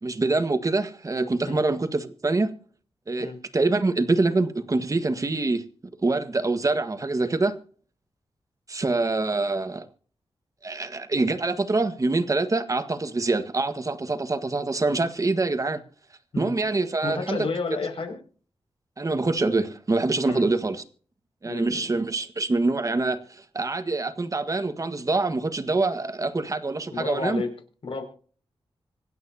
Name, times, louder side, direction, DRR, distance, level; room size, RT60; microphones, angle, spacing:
voice 1, 0.0-2.5 3.1-5.6 6.0-7.6 8.7-9.9 10.6-15.8 16.4-17.5 19.0-20.8 21.4-27.4, right 3 dB, 35° right, 1.6 m, -25 dB
voice 2, 17.0-18.2 20.2-20.5 21.4-21.9 26.9-27.5 27.8-28.0, left 4 dB, 65° left, 6.3 m, -31 dB
26.0 x 9.3 x 2.9 m
wide cardioid pair, 95°, 10 cm